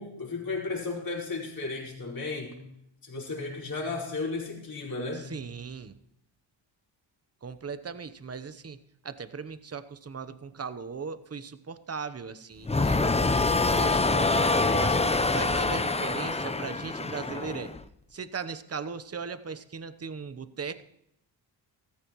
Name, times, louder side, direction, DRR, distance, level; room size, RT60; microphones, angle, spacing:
voice 1, 0.0-2.6 3.0-5.3, left 3 dB, 45° left, -3 dB, 5.3 m, -34 dB
voice 2, 5.1-5.9 7.4-8.8 9.0-13.3 13.8-17.7 18.1-20.8, right 5 dB, 30° right, 12 dB, 0.9 m, -38 dB
sound 1, 12.6-17.8, left 3 dB, 15° left, 0.7 m, -25 dB
15.0 x 14.5 x 3.1 m, 0.76 s
cardioid pair, 75°, 47 cm